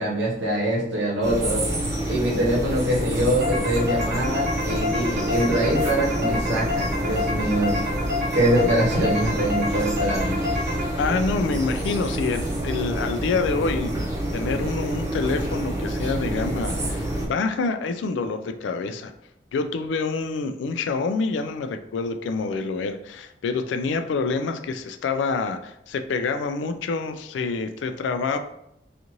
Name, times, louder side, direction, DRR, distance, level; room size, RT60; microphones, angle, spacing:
voice 1, 0.0-1.7 2.1-7.8 8.3-10.4, right 1 dB, 90° right, -4 dB, 0.9 m, -24 dB
sound 1, 1.2-17.3, right 1 dB, 15° right, 0.6 m, -28 dB
sound 2, 3.4-11.3, left 3 dB, 55° right, 0.7 m, -29 dB
voice 2, 11.0-14.0 14.3-19.1 19.5-28.4, left 4 dB, 85° left, 8 dB, 0.3 m, -27 dB
2.6 x 2.5 x 2.9 m, 0.79 s
head